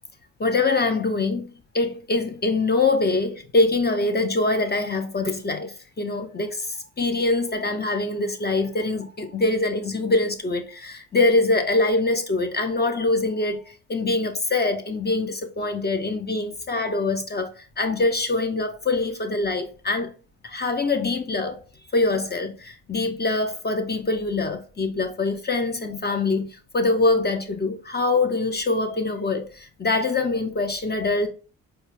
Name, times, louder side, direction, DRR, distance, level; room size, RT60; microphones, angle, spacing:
voice 1, 0.4-20.1 20.4-21.6 21.9-31.3, left 3 dB, 25° left, 0.6 m, -24 dB
4.0 x 2.3 x 3.0 m
hypercardioid pair, 50°, 38 cm